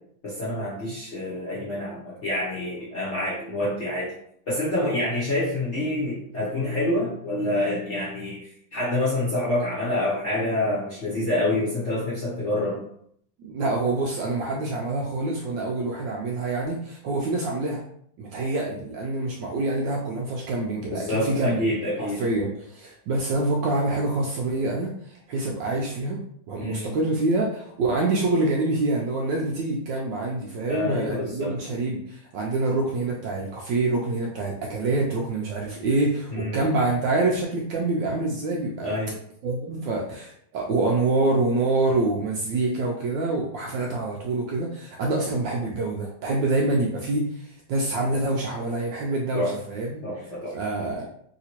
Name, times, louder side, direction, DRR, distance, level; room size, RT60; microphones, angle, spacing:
voice 1, 0.2-4.1 4.5-12.8 20.8-22.2 26.6-27.0 30.7-31.5 36.3-36.6 38.8-39.1 49.3-49.5 50.0-50.6, left 1 dB, 55° left, -8 dB, 0.8 m, -27 dB
voice 2, 13.4-17.8 18.2-21.7 22.0-26.2 26.5-38.9 39.4-50.0 50.5-51.0, right 2 dB, 75° right, -1 dB, 1.0 m, -26 dB
3.3 x 2.8 x 2.8 m, 0.67 s
omnidirectional pair, 2.3 m